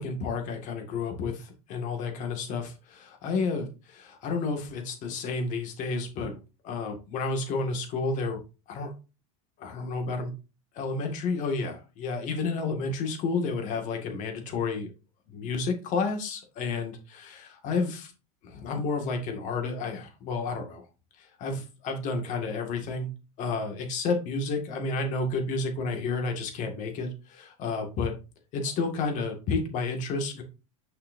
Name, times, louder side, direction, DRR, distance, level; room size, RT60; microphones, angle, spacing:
voice 1, 0.0-8.4 8.7-8.9 9.6-10.3 10.7-14.9 15.3-18.1 18.4-20.8 21.2-23.1 23.4-28.1 28.5-30.4, left 4 dB, 45° left, 4 dB, 1.9 m, -31 dB
6.5 x 5.9 x 2.6 m, 0.30 s
supercardioid pair, 125°, 17 cm